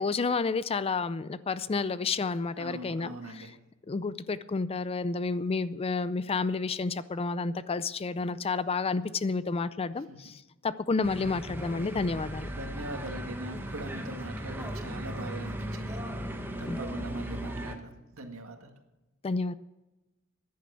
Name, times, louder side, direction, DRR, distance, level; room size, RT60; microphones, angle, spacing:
voice 1, 0.0-3.4 3.9-12.5 16.6-16.8 19.2-19.5, left 4 dB, 30° left, 15 dB, 0.4 m, -30 dB
voice 2, 2.6-3.5 10.1-10.3 12.5-16.2 16.6-18.7, right 1 dB, 80° right, 4 dB, 1.9 m, -41 dB
sound 1, 11.0-17.8, right 1 dB, 10° right, 1.4 m, -37 dB
13.5 x 10.5 x 6.9 m, 1.0 s
head